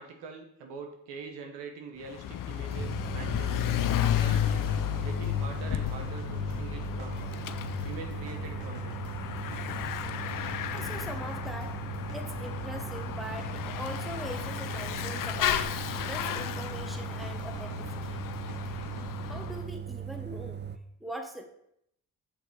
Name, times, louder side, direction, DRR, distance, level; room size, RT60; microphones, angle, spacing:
voice 1, 0.0-3.6 4.1-7.4 7.8-9.0, right 5 dB, 85° right, 3 dB, 1.0 m, -44 dB
Bicycle / Mechanisms, 2.0-19.6, left 11 dB, 55° left, 0.5 m, -33 dB
sound 1, 2.5-19.1, right 4 dB, 60° right, 1.0 m, -54 dB
sound 2, 2.8-20.8, right 8 dB, 25° right, 0.4 m, -39 dB
voice 2, 10.7-11.8 12.1-15.7 16.0-18.2 19.2-20.6 21.0-21.5, equal, ahead, 4 dB, 1.0 m, -41 dB
5.9 x 4.0 x 4.6 m, 0.75 s
supercardioid pair, 50°, 41 cm